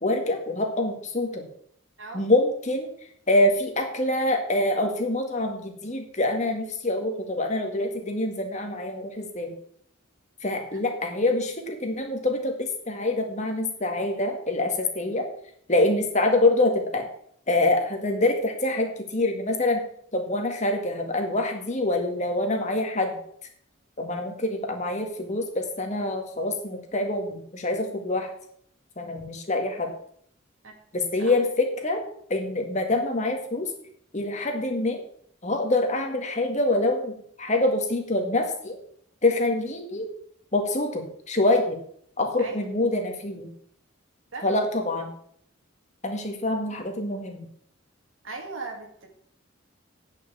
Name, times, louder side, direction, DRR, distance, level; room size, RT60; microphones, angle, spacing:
voice 1, 0.0-1.5 2.1-2.9 3.3-9.5 10.4-15.3 15.7-17.1 17.5-19.8 20.1-23.2 24.0-28.3 29.0-29.9 30.9-32.0 32.3-33.7 34.1-35.0 35.4-38.8 39.2-40.1 40.5-41.8 42.2-43.5 44.4-45.1 46.0-47.5, left 2 dB, 35° left, 4 dB, 1.9 m, -25 dB
voice 2, 48.2-49.1, right 3 dB, 75° right, 2 dB, 2.1 m, -38 dB
9.4 x 5.8 x 8.3 m, 0.65 s
head